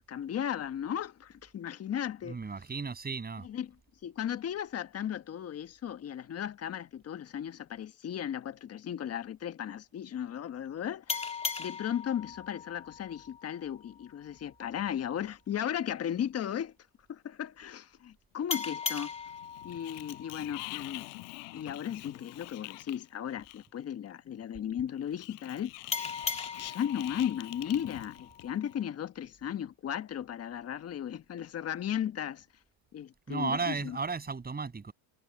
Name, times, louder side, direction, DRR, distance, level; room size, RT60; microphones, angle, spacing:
voice 1, 0.1-2.4 3.4-3.7 4.0-11.2 11.6-16.7 17.1-19.1 19.6-21.1 21.5-25.7 26.6-32.4 32.9-34.0, left 9 dB, 30° left, 1.3 m, -36 dB
voice 2, 2.2-3.5 33.3-34.9, right 4 dB, 20° right, 7.5 m, -34 dB
sound 1, 11.1-14.3 18.5-21.7 25.9-28.9, left 5 dB, 10° left, 1.9 m, -39 dB
Sliding door, 19.3-23.9 25.0-28.7, left 32 dB, 70° left, 5.2 m, -45 dB
supercardioid pair, 105°, 50 cm